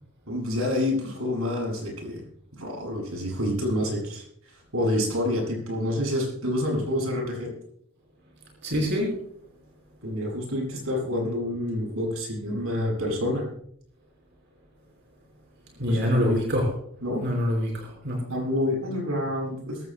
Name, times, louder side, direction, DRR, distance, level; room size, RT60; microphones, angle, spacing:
voice 1, 0.3-2.2 2.6-4.2 4.7-7.5 10.0-13.4 15.9-16.4 17.0-17.2 18.3-19.8, left 1 dB, 90° right, 0 dB, 6.9 m, -28 dB
voice 2, 8.6-9.1 15.8-16.7 17.2-18.2, equal, 55° right, -1 dB, 4.6 m, -25 dB
22.5 x 15.0 x 2.2 m, 0.67 s
head